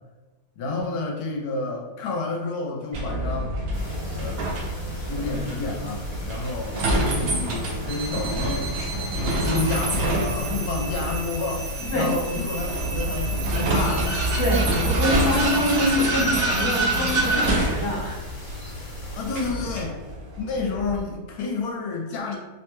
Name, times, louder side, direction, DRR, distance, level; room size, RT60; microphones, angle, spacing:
voice 1, 0.6-3.6 4.1-4.4 5.0-6.9 7.1-8.7 9.1-14.2 14.7-15.0 19.1-20.0 20.4-22.4, left 3 dB, 75° left, 0 dB, 1.1 m, -30 dB
Vehicle, 2.9-21.0, right 1 dB, 90° right, 0.5 m, -27 dB
sound 1, 3.7-19.5, left 1 dB, 55° left, 1.2 m, -37 dB
sound 2, 7.9-19.9, right 3 dB, 75° right, 1.0 m, -37 dB
voice 2, 14.4-18.3, left 1 dB, 40° left, -5 dB, 0.4 m, -25 dB
2.9 x 2.1 x 3.0 m, 1.2 s
omnidirectional pair, 1.7 m